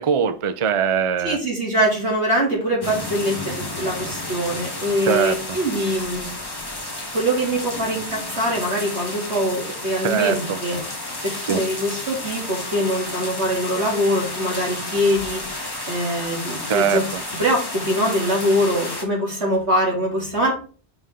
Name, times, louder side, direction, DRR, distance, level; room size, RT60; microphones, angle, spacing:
voice 1, 0.0-1.4 5.1-5.6 10.0-10.6 11.5-11.6 16.7-17.2, right 7 dB, 40° right, 0.5 m, -21 dB
voice 2, 1.2-6.3 7.1-10.8 11.2-15.4 15.9-17.0 17.4-20.7, equal, 75° right, 3.3 m, -23 dB
sound 1, 2.8-19.0, left 2 dB, 20° left, 1.3 m, -32 dB
6.0 x 5.6 x 3.7 m
omnidirectional pair, 1.1 m